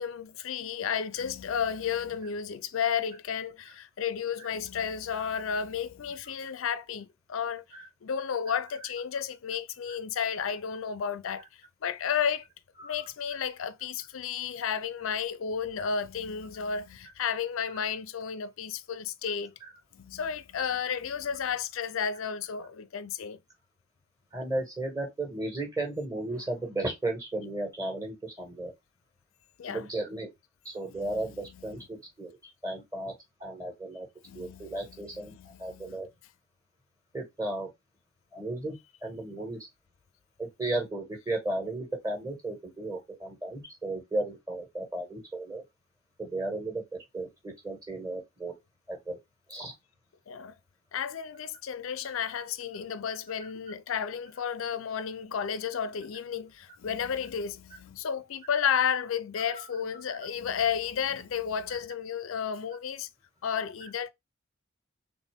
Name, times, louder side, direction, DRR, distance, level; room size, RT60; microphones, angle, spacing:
voice 1, 0.0-11.5 11.8-12.5 12.8-19.5 19.9-23.4 29.6-29.8 30.9-31.3 31.7-31.8 34.3-35.0 35.3-36.0 50.3-50.5 50.9-63.1 63.4-64.1, left 7 dB, 70° left, 0.4 m, -32 dB
voice 2, 24.3-28.7 29.7-30.3 30.6-32.4 32.6-33.1 33.4-34.1 34.3-36.1 37.1-37.7 38.3-38.8 39.0-39.6 40.4-45.6 46.2-48.5 48.9-49.2 49.5-49.7 59.6-59.7 60.1-60.2, right 2 dB, 15° right, 1.5 m, -35 dB
4.1 x 3.3 x 3.4 m
head